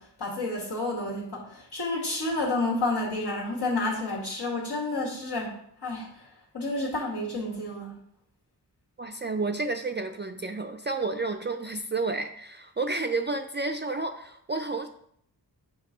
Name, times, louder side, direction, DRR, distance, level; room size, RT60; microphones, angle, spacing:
voice 1, 0.0-8.0, left 2 dB, 75° left, -4 dB, 1.9 m, -30 dB
voice 2, 9.0-14.9, right 3 dB, 30° right, 5 dB, 0.4 m, -31 dB
5.3 x 4.9 x 3.8 m, 0.68 s
wide cardioid pair, 50°, 41 cm